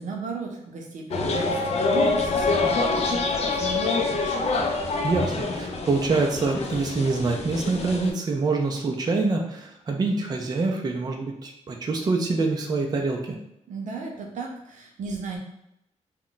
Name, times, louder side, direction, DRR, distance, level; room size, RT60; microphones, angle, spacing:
voice 1, 0.0-4.4 13.7-15.4, right 4 dB, 85° right, 1 dB, 0.6 m, -36 dB
sound 1, 1.1-8.1, left 3 dB, 60° left, 0.4 m, -26 dB
voice 2, 5.0-13.4, right 3 dB, 30° right, 1 dB, 0.4 m, -25 dB
2.2 x 2.1 x 3.8 m, 0.81 s
wide cardioid pair, 125°, 13 cm